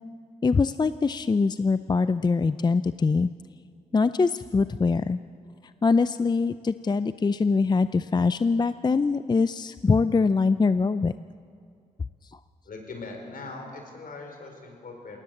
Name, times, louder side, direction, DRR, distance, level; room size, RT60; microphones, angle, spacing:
voice 1, 0.4-3.3 3.9-5.2 5.8-11.1, left 4 dB, 25° left, 13 dB, 0.4 m, -23 dB
voice 2, 12.6-15.2, left 3 dB, 60° left, 3 dB, 4.6 m, -40 dB
20.0 x 17.5 x 7.8 m, 2.4 s
cardioid pair, 65°, 16 cm